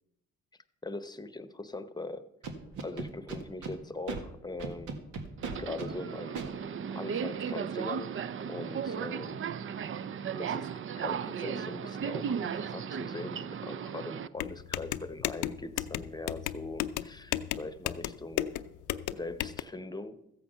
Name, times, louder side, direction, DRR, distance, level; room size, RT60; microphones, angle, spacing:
voice 1, 0.8-2.3 2.8-5.0 5.6-6.7 6.9-8.1 8.5-9.8 10.3-18.6 19.1-20.2, left 2 dB, 15° left, 12 dB, 0.9 m, -41 dB
Scratching (performance technique), 2.4-3.7 4.1-4.2 4.6-5.9 6.4-6.5, right 4 dB, 85° right, 1.8 m, -37 dB
Subway metro underground, 5.4-14.3, right 7 dB, 45° right, 0.5 m, -36 dB
sound 1, 14.4-19.6, left 13 dB, 85° left, 0.6 m, -34 dB
14.0 x 8.5 x 5.6 m, 0.86 s
cardioid pair, 90°, 30 cm